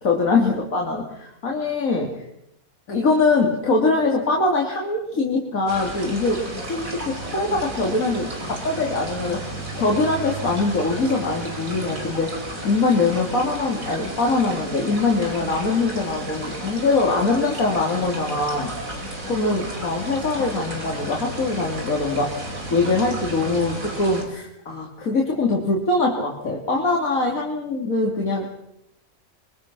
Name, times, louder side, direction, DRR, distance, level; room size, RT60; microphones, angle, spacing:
voice 1, 0.0-2.1 2.9-9.5 9.7-12.4 12.6-18.7 19.3-28.5, left 3 dB, 80° left, -1 dB, 3.2 m, -23 dB
sound 1, 5.7-24.2, right 1 dB, 75° right, 5.4 m, -33 dB
25.0 x 23.5 x 6.1 m, 0.84 s
omnidirectional pair, 1.4 m